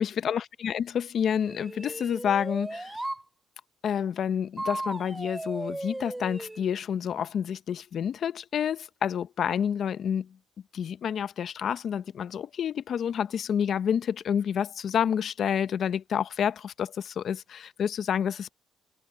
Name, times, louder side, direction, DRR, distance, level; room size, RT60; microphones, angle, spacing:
voice 1, 0.0-3.0 3.8-10.3 10.7-18.5, left 8 dB, 60° left, 0.6 m, -29 dB
sound 1, 1.4-3.2 4.6-6.6, right 1 dB, 10° right, 2.5 m, -36 dB
cardioid pair, 90°, 0 cm